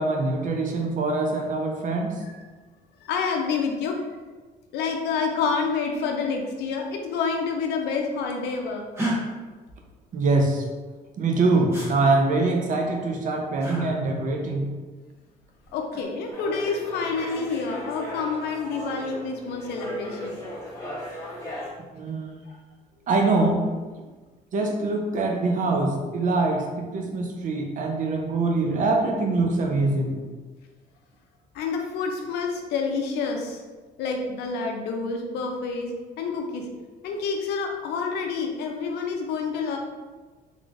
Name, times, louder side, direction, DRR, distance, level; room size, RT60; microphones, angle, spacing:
voice 1, 0.0-2.2 10.1-10.6 11.2-14.7 21.9-22.2 23.1-23.6 24.5-30.2, right 3 dB, 50° right, 2 dB, 0.6 m, -24 dB
voice 2, 3.0-4.0 4.7-8.9 15.7-20.4 31.5-33.6 34.0-36.7 37.0-39.8, left 5 dB, 80° left, 2 dB, 0.6 m, -28 dB
sound 1, 8.9-9.2 11.7-11.9 13.6-13.9 15.6-16.1, right 1 dB, 15° right, 1.2 m, -29 dB
sound 2, 16.3-21.7, equal, 15° left, 1.3 m, -37 dB
3.7 x 3.2 x 2.5 m, 1.3 s
cardioid pair, 110°, 17 cm